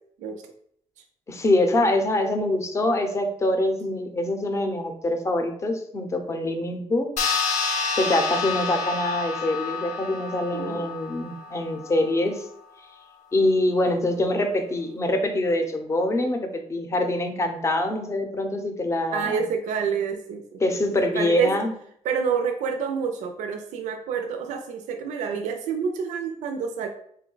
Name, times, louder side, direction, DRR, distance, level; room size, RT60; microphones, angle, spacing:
voice 1, 1.3-7.1 8.0-12.5 13.3-19.4 20.6-21.7, left 1 dB, 25° left, 5 dB, 0.6 m, -24 dB
sound 1, 7.2-12.0, left 4 dB, 75° left, 0.7 m, -29 dB
voice 2, 10.5-10.9 19.1-20.6 21.1-21.6 22.0-26.9, right 6 dB, 85° right, 5 dB, 0.4 m, -28 dB
3.6 x 2.2 x 3.8 m, 0.66 s
cardioid pair, 135°, 12 cm